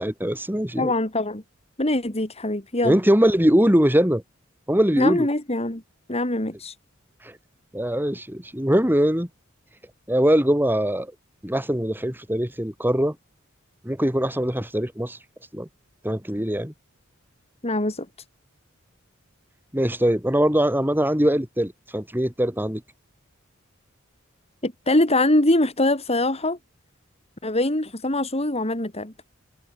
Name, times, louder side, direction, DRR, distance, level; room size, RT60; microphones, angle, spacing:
voice 1, 0.0-0.9 2.8-4.2 4.7-5.3 7.2-7.3 7.7-9.3 10.1-11.1 11.4-13.2 13.8-15.2 15.5-15.7 16.0-16.7 19.7-22.8, equal, 10° right, 6.1 m, -22 dB
voice 2, 0.8-1.4 1.8-3.0 5.0-5.8 6.1-6.7 17.6-18.1 24.6-26.6 27.4-29.1, left 1 dB, 30° left, 3.7 m, -23 dB
head